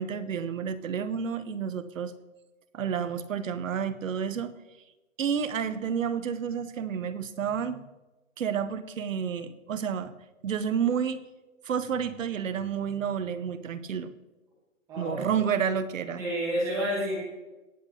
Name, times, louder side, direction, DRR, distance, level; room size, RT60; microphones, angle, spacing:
voice 1, 0.0-2.1 2.7-4.5 5.2-7.8 8.4-10.1 10.4-11.2 11.6-14.1 15.0-16.2, right 7 dB, 65° right, 11 dB, 0.9 m, -30 dB
voice 2, 14.9-15.3 16.2-17.3, equal, 10° right, -5 dB, 1.2 m, -29 dB
18.0 x 8.1 x 2.8 m, 1.1 s
hypercardioid pair, 170°, 42 cm